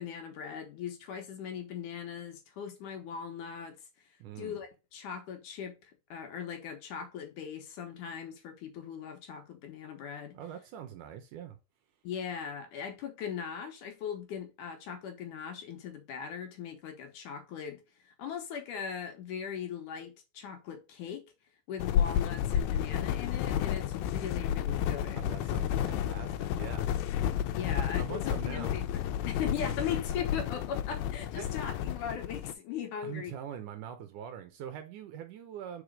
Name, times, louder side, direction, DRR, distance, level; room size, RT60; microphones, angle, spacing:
voice 1, 0.0-4.1 4.4-10.4 12.0-21.2 21.7-25.3 27.5-33.3, left 7 dB, 70° left, 2.4 m, -39 dB
voice 2, 4.2-4.6 10.3-11.6 25.1-26.9 27.8-28.8 29.4-29.5 31.4-31.5 33.0-35.8, right 9 dB, 75° right, 2.1 m, -43 dB
sound 1, 21.8-32.5, left 10 dB, 90° left, 2.5 m, -31 dB
5.0 x 4.8 x 5.0 m
omnidirectional pair, 4.1 m